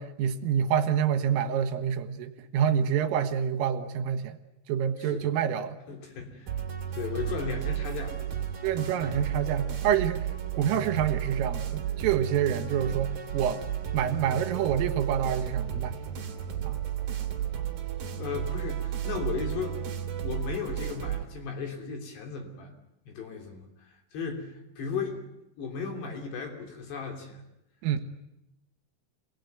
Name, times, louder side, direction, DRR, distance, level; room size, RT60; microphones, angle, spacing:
voice 1, 0.0-4.4 4.7-5.8 8.6-10.2 10.5-13.6 13.9-16.0 16.6-16.8 27.8-28.0, right 8 dB, 80° right, 9 dB, 3.9 m, -27 dB
voice 2, 5.9-6.6 6.8-8.4 18.2-19.8 20.2-22.7 23.1-25.2 25.6-27.4, left 6 dB, 55° left, 3 dB, 5.0 m, -36 dB
sound 1, 6.5-21.2, right 10 dB, 50° right, 3.9 m, -33 dB
27.0 x 20.0 x 9.4 m, 0.86 s
omnidirectional pair, 5.9 m